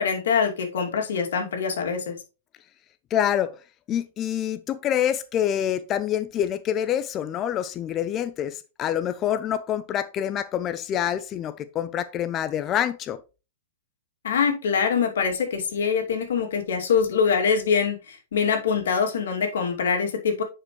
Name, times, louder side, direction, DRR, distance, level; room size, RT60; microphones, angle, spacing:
voice 1, 0.0-2.2 14.2-20.4, left 6 dB, 85° left, 2.4 m, -24 dB
voice 2, 3.1-3.5 3.9-13.2, left 10 dB, 20° left, 0.3 m, -26 dB
9.8 x 5.0 x 3.1 m
supercardioid pair, 170°, 0 cm